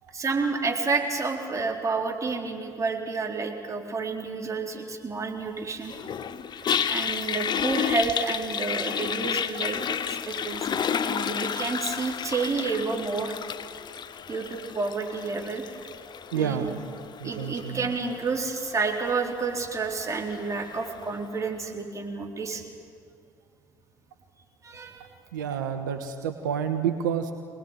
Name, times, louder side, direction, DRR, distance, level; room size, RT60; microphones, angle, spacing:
voice 1, 0.1-6.0 6.8-13.3 14.3-15.6 16.3-16.7 17.2-22.6 24.6-25.1, right 4 dB, 30° right, 1 dB, 4.3 m, -30 dB
Toilet flush, 5.8-21.1, left 8 dB, 45° left, 1.1 m, -32 dB
voice 2, 16.3-16.7 17.2-17.9 25.3-27.3, right 8 dB, 85° right, 6 dB, 1.2 m, -29 dB
25.0 x 20.0 x 9.3 m, 2.2 s
hypercardioid pair, 60°, 10 cm